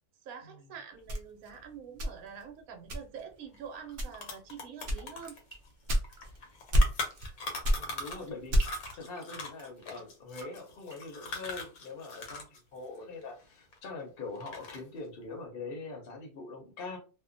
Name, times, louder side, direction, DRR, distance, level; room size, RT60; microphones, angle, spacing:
voice 1, 0.2-5.4, right 7 dB, 75° right, 1.0 m, -46 dB
sound 1, 1.1-2.5 2.9-3.3 3.9-4.4 4.9-6.4 6.7-7.3 7.6-8.9, equal, 90° right, 0.4 m, -28 dB
sound 2, 3.5-3.6 3.9-8.3 8.6-12.6 12.8-14.0 14.4-15.0, left 3 dB, 75° left, 1.2 m, -40 dB
sound 3, 5.0-13.0 13.2-13.8, right 2 dB, 15° right, 1.1 m, -56 dB
voice 2, 7.7-17.0, left 3 dB, 50° left, 0.8 m, -43 dB
2.6 x 2.1 x 2.5 m
omnidirectional pair, 1.6 m